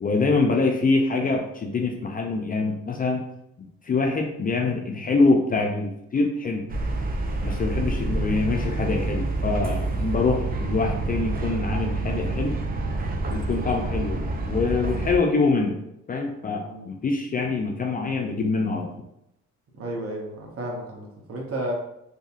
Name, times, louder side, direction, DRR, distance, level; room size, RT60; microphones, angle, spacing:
voice 1, 0.0-3.3 3.6-6.6 7.4-12.6 13.3-15.8 16.1-19.0, left 3 dB, 30° left, 2 dB, 0.4 m, -25 dB
sound 1, 6.7-15.2, right 2 dB, 30° right, 0.4 m, -27 dB
voice 2, 19.8-21.7, right 1 dB, 50° right, -1 dB, 0.8 m, -32 dB
2.8 x 2.6 x 2.4 m, 0.81 s
cardioid pair, 90°, 30 cm